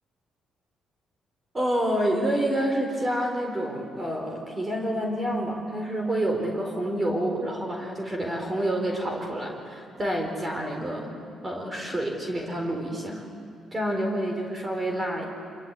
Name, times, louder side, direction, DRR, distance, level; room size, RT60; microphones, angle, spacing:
voice 1, 1.5-11.1 11.4-13.3 13.7-15.3, right 1 dB, 25° right, 1 dB, 4.3 m, -28 dB
26.5 x 22.0 x 8.4 m, 2.2 s
cardioid pair, 90°, 0 cm